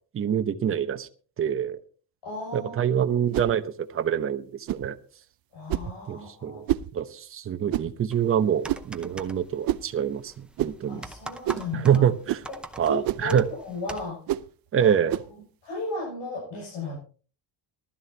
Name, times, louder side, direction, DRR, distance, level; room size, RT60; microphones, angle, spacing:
voice 1, 0.1-1.1 1.4-1.8 2.5-5.0 6.1-6.7 6.9-10.3 10.6-11.0 11.7-12.4 12.8-13.4 14.7-15.2, right 9 dB, 30° right, 8 dB, 0.9 m, -25 dB
voice 2, 2.2-2.8 5.5-6.6 10.9-12.1 12.6-14.2 14.8-14.9 15.6-17.0, left 2 dB, 80° left, -3 dB, 7.3 m, -35 dB
sound 1, 3.3-3.5 4.7-4.9 5.7-5.9 6.7-6.9 7.7-7.9 8.7-8.9 9.6-9.9 10.6-10.8 11.4-11.7 12.3-12.5 13.0-13.3 14.3-14.5 15.1-15.3, right 14 dB, 55° right, 0.6 m, -28 dB
sound 2, 8.1-14.1, right 1 dB, ahead, 0.7 m, -44 dB
19.0 x 12.5 x 2.8 m, 0.39 s
cardioid pair, 165°, 41 cm